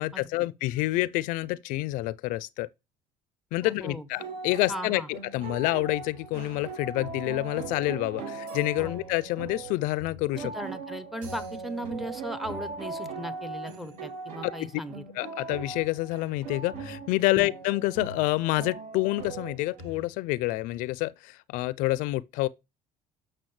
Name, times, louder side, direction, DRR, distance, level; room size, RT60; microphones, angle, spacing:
voice 1, 0.0-2.7 3.5-10.5 14.4-14.7 15.2-22.5, left 19 dB, 75° left, 0.4 m, -28 dB
voice 2, 3.6-4.1 4.7-5.1 8.8-8.9 10.4-15.0 17.3-17.4, equal, ahead, 0.7 m, -37 dB
sound 1, 4.1-20.0, right 4 dB, 65° right, 5.3 m, -39 dB
10.5 x 6.2 x 3.2 m
cardioid pair, 155°, 14 cm